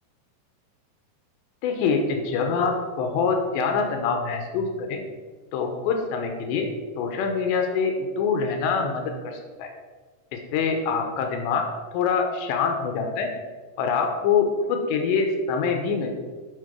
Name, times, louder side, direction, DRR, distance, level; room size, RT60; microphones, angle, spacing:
voice 1, 1.6-5.0 5.5-6.7 7.0-9.7 10.5-11.6 11.9-13.3 13.8-16.1, left 5 dB, 85° left, 4 dB, 3.3 m, -25 dB
9.9 x 5.9 x 5.2 m, 1.4 s
omnidirectional pair, 5.1 m